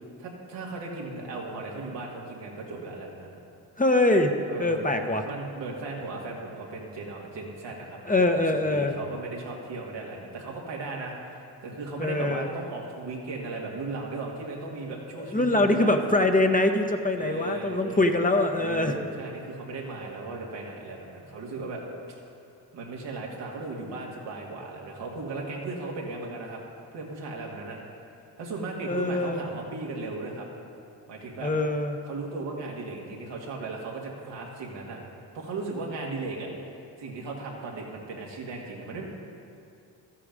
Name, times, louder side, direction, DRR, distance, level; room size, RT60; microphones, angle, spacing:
voice 1, 0.2-3.4 4.5-15.9 17.1-18.2 18.6-21.8 22.7-26.6 26.9-27.8 28.4-30.5 31.1-31.5 32.1-35.0 35.3-36.5 37.0-39.1, right 3 dB, 80° right, -2 dB, 2.0 m, -36 dB
voice 2, 3.8-5.2 8.1-9.0 12.0-12.5 15.3-19.0 28.9-29.5 31.4-32.0, left 2 dB, 20° left, 5 dB, 1.1 m, -23 dB
12.5 x 8.5 x 5.2 m, 2.5 s
supercardioid pair, 50°, 42 cm